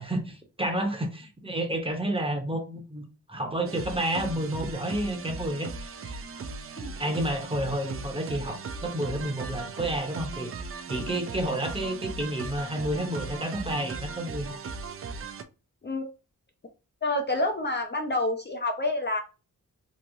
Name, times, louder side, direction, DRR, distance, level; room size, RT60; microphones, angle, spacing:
voice 1, 0.0-3.0 3.3-6.2 7.0-10.5 10.9-14.6, right 1 dB, 15° right, 0.8 m, -30 dB
sound 1, 3.7-15.4, right 4 dB, 45° right, 0.4 m, -38 dB
voice 2, 17.0-19.2, left 2 dB, 35° left, 0.5 m, -28 dB
3.0 x 2.8 x 2.6 m
wide cardioid pair, 95°, 33 cm